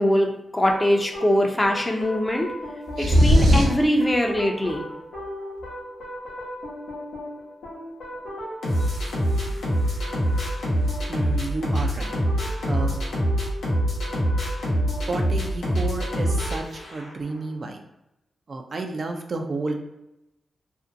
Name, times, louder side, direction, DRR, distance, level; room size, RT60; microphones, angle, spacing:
voice 1, 0.0-2.5 3.0-4.8, equal, 20° left, 2 dB, 0.5 m, -22 dB
sound 1, 0.6-17.3, equal, 85° left, 0.7 m, -27 dB
sound 2, 3.0-3.9, equal, 80° right, 1.0 m, -16 dB
voice 2, 11.1-12.1 12.7-13.0 15.1-17.8 18.5-19.9, right 3 dB, 55° right, 3 dB, 0.3 m, -31 dB
2.6 x 2.1 x 2.5 m, 0.92 s
cardioid pair, 50°, 0 cm